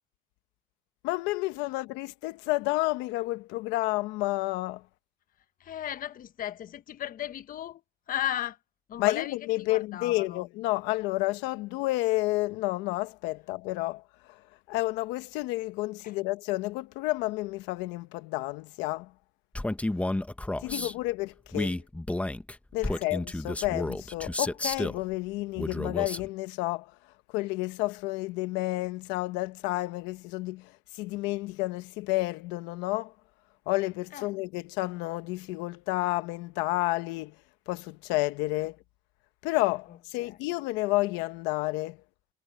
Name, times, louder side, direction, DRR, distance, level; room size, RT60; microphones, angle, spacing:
voice 1, 1.0-4.8 9.0-14.0 14.3-14.4 14.7-19.1 20.6-21.8 22.7-26.9 27.3-33.1 33.7-37.3 37.7-38.8 39.4-42.0, left 20 dB, 85° left, 1.1 m, -30 dB
voice 2, 5.6-8.6 8.9-9.4 9.7-10.5 16.0-16.2 20.6-21.0 22.8-23.1 34.1-34.3 39.9-40.5, left 11 dB, 50° left, 1.2 m, -36 dB
Male speech man speaking, 19.5-20.9 21.5-25.0 25.6-26.3, left 1 dB, 5° left, 1.3 m, -31 dB
cardioid pair, 100°, 18 cm